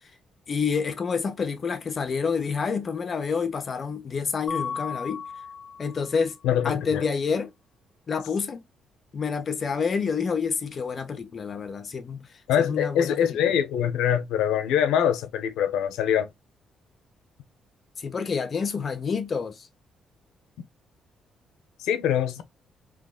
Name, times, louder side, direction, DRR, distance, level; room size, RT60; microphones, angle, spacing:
voice 1, 0.5-5.2 5.8-6.4 6.6-7.5 8.1-8.6 9.1-12.3 12.6-13.6 18.0-19.7, left 5 dB, 45° left, 0.7 m, -28 dB
Mallet percussion, 4.5-6.3, left 6 dB, 25° left, 1.2 m, -35 dB
voice 2, 6.4-7.1 12.5-16.3 21.8-22.4, left 9 dB, 90° left, 0.6 m, -24 dB
3.5 x 2.9 x 2.3 m
cardioid pair, 90°, 0 cm